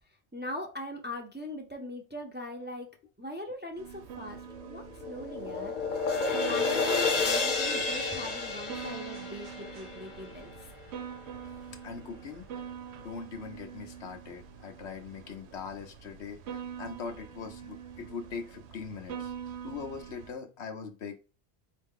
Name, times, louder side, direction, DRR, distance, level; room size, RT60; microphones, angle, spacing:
voice 1, 0.3-2.9 3.2-4.4 4.6-5.7 6.5-10.7, left 1 dB, 10° right, 2 dB, 0.6 m, -40 dB
sound 1, 3.8-20.3, right 8 dB, 80° right, 0.8 m, -45 dB
sound 2, 4.5-10.8, left 4 dB, 50° left, 0.8 m, -31 dB
voice 2, 11.8-12.5 13.0-19.3 19.6-21.2, left 5 dB, 85° left, 5 dB, 1.1 m, -41 dB
4.5 x 2.8 x 3.7 m, 0.33 s
omnidirectional pair, 1.1 m